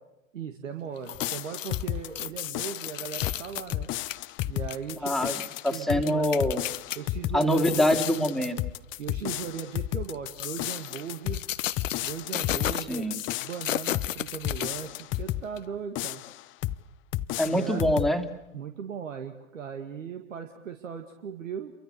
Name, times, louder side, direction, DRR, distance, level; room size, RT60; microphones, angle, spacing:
voice 1, 0.3-3.9 4.5-5.4 5.7-6.3 6.9-7.9 8.4-8.6 9.0-11.5 12.0-13.1 13.4-16.2 17.5-17.8 18.5-21.7, right 7 dB, 75° right, 6 dB, 2.0 m, -38 dB
sound 1, 1.0-7.0 7.4-8.6 9.0-9.2 10.0-15.2 15.6-15.7, left 11 dB, 75° left, 0.9 m, -35 dB
sound 2, 1.1-15.5 15.9-16.8 17.1-18.2, left 15 dB, 30° left, 0.8 m, -33 dB
voice 2, 5.0-5.3 5.6-6.6 7.3-8.6 12.9-13.2 17.4-18.3, equal, ahead, 5 dB, 2.5 m, -24 dB
29.0 x 24.0 x 6.8 m, 0.92 s
figure-of-eight pair, 95°, 39 cm